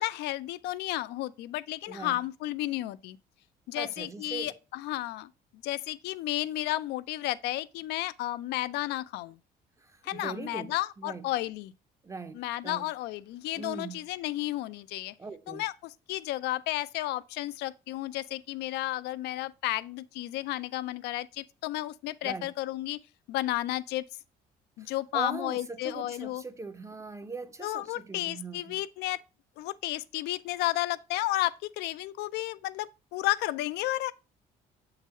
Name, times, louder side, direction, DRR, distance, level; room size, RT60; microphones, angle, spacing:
voice 1, 0.0-3.2 3.7-5.3 5.6-9.4 10.0-11.7 12.3-15.1 15.5-23.0 23.3-24.0 24.8-26.4 27.6-29.2 29.6-34.1, left 16 dB, 85° left, 0.4 m, -32 dB
voice 2, 1.9-2.2 3.7-4.6 9.8-11.3 12.0-12.9 13.5-14.0 15.2-15.6 22.2-22.5 24.8-28.8, right 4 dB, 15° right, 0.6 m, -41 dB
7.2 x 3.9 x 4.1 m
cardioid pair, 110°, 17 cm